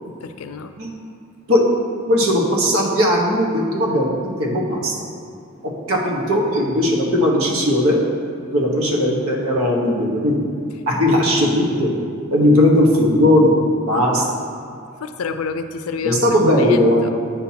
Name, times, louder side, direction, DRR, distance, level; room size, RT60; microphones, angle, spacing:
voice 1, 0.2-0.7 15.0-17.1, left 5 dB, 90° left, 9 dB, 0.4 m, -29 dB
voice 2, 2.1-4.1 4.4-4.9 5.6-8.0 8.5-10.4 10.9-11.9 12.3-13.5 13.9-14.4 16.0-17.1, left 1 dB, 90° right, -2 dB, 1.2 m, -17 dB
8.7 x 5.8 x 2.8 m, 2.3 s
head